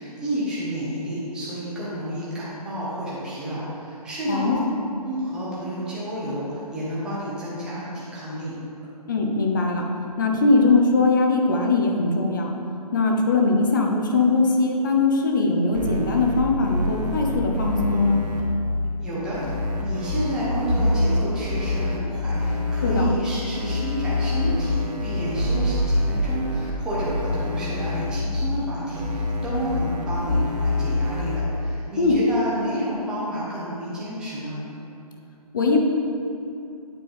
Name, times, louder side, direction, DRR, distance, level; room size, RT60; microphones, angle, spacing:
voice 1, 0.0-4.5 5.0-8.5 19.0-34.6, equal, 5° right, -9 dB, 0.8 m, -30 dB
voice 2, 4.3-4.8 9.1-9.8 10.2-12.5 12.9-18.2 22.8-23.1 32.0-32.2 35.5-35.8, left 3 dB, 30° left, 1 dB, 0.7 m, -21 dB
sound 1, 15.7-18.4 19.3-22.0 22.3-23.1 23.5-26.7 27.0-28.1 28.9-31.4, left 2 dB, 80° right, 1.2 m, -25 dB
8.9 x 3.4 x 4.8 m, 2.8 s
hypercardioid pair, 165°, 21 cm